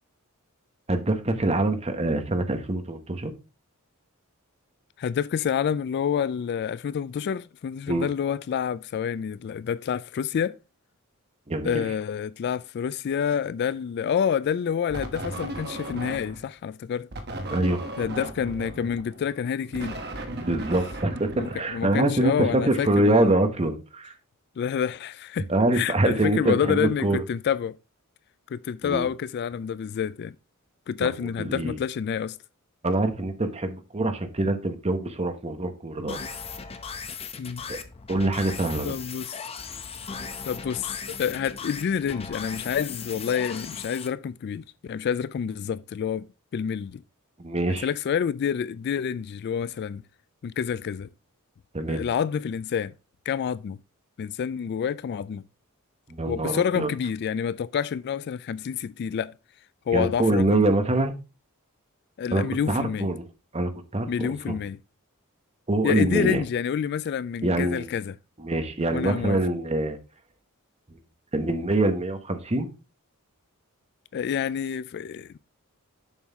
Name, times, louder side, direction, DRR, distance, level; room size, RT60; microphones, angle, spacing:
voice 1, 0.9-3.3 7.9-8.1 11.5-11.8 17.5-17.8 20.4-24.1 25.5-27.2 28.8-29.1 31.0-31.1 31.4-31.8 32.8-36.2 37.7-37.8 38.1-38.9 47.4-47.9 51.7-52.0 56.1-56.9 59.9-61.1 62.3-63.3 63.5-64.6 65.7-66.4 67.4-68.0 68.4-70.0 71.3-72.7, right 2 dB, 30° right, 1.0 m, -25 dB
voice 2, 5.0-10.6 11.6-17.1 18.0-20.0 21.3-23.3 24.6-25.5 25.7-27.8 28.5-30.4 30.9-32.4 37.4-37.6 38.8-39.4 40.4-46.2 46.5-47.0 47.8-50.0 50.4-51.1 51.9-52.9 53.3-53.8 54.2-55.4 56.3-59.3 59.9-60.6 62.2-63.1 64.1-64.8 65.8-68.1 68.9-69.4 74.1-75.4, left 7 dB, 50° left, 0.3 m, -28 dB
sound 1, 14.9-16.5 17.1-22.2, right 1 dB, 50° right, 1.2 m, -36 dB
sound 2, 36.1-44.1, left 5 dB, 25° left, 0.7 m, -37 dB
7.2 x 6.3 x 3.5 m
head